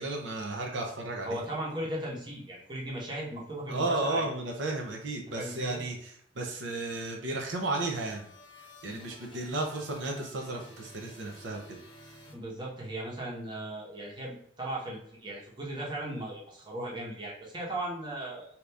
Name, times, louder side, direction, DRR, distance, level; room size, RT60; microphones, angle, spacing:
voice 1, 0.0-1.4 3.7-8.3 8.6-12.1, right 2 dB, 85° right, 1 dB, 0.6 m, -34 dB
voice 2, 1.2-4.3 5.3-5.8 12.3-18.5, right 1 dB, 25° right, -4 dB, 0.9 m, -37 dB
sound 1, 7.6-13.0, left 1 dB, 25° left, 0.6 m, -53 dB
2.8 x 2.5 x 3.3 m, 0.66 s
head